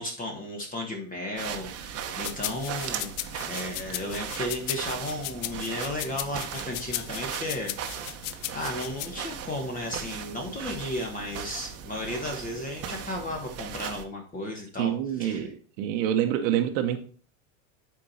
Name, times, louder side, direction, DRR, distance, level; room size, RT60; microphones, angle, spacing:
voice 1, 0.0-8.0 8.5-15.5, left 1 dB, 20° left, 1 dB, 1.4 m, -34 dB
sound 1, 1.4-14.0, right 8 dB, 40° right, 1.1 m, -38 dB
sound 2, 2.2-9.1, left 15 dB, 70° left, 0.6 m, -36 dB
voice 2, 14.8-15.5 15.8-17.0, right 10 dB, 70° right, 6 dB, 1.1 m, -26 dB
8.7 x 4.5 x 4.3 m, 0.43 s
supercardioid pair, 120°, 39 cm